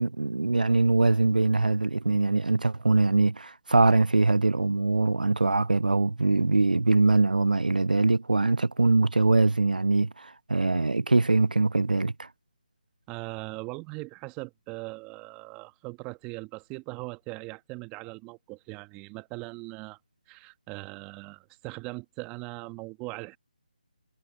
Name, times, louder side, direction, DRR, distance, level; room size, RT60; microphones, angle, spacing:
voice 1, 0.0-12.3, right 3 dB, 75° right, 0.9 m, -23 dB
voice 2, 13.1-20.0 20.3-23.4, right 26 dB, 15° right, 1.4 m, -40 dB
figure-of-eight pair, 150°, 5 cm